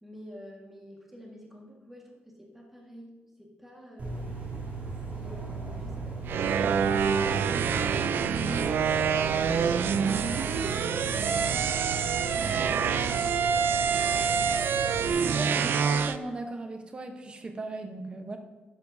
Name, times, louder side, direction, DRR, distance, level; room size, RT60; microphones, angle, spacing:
voice 1, 0.0-4.3 13.7-14.8, equal, 5° right, -3 dB, 1.6 m, -49 dB
sound 1, 4.0-15.1, right 3 dB, 50° right, 3.0 m, -37 dB
sound 2, 6.3-16.2, right 6 dB, 65° right, 0.4 m, -26 dB
voice 2, 15.3-18.4, right 2 dB, 25° right, 5 dB, 0.9 m, -38 dB
12.5 x 11.0 x 2.7 m, 1.2 s
wide cardioid pair, 170°, 4 cm